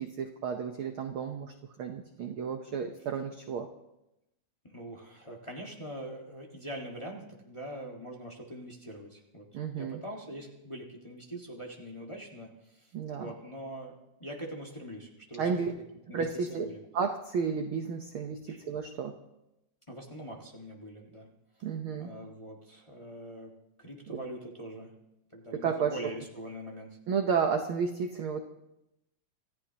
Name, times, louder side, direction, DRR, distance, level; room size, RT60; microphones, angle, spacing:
voice 1, 0.0-3.7 9.5-10.0 12.9-13.3 15.4-15.7 16.1-16.7 16.9-19.1 21.6-22.1 24.1-24.2 25.5-26.0 27.1-28.4, right 6 dB, 70° right, 5 dB, 1.3 m, -32 dB
voice 2, 4.6-9.5 9.8-15.6 16.1-16.8 18.5-18.6 19.9-21.3 22.0-24.9 25.3-27.0, right 1 dB, 15° left, -1 dB, 0.9 m, -43 dB
26.5 x 14.5 x 2.9 m, 0.89 s
omnidirectional pair, 3.5 m